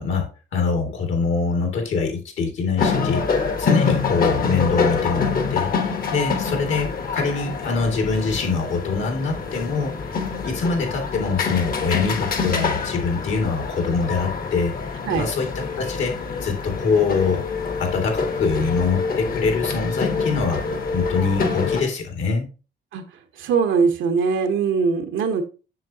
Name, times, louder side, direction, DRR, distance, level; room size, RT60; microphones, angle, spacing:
voice 1, 0.0-9.9 10.4-17.4 17.8-20.6 20.9-22.5, left 4 dB, 75° left, 3 dB, 2.4 m, -24 dB
sound 1, 2.8-21.8, left 5 dB, 50° left, 1.2 m, -26 dB
voice 2, 23.4-25.4, right 5 dB, 80° right, 7 dB, 1.1 m, -21 dB
7.5 x 6.1 x 2.8 m, 0.33 s
cardioid pair, 90°, 20 cm